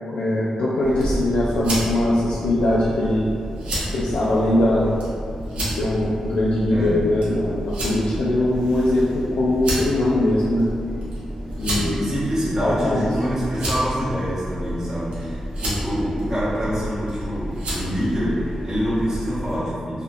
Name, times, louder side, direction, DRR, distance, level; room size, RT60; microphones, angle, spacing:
voice 1, 0.1-3.3 3.9-5.0 5.5-10.7 11.6-12.0 12.6-13.1, left 1 dB, 85° left, -8 dB, 0.3 m, -21 dB
sound 1, 0.8-19.6, right 1 dB, 75° right, 0.7 m, -30 dB
voice 2, 11.7-20.0, equal, 25° right, -11 dB, 0.8 m, -26 dB
2.7 x 2.2 x 2.5 m, 2.3 s
cardioid pair, 60°, 2 cm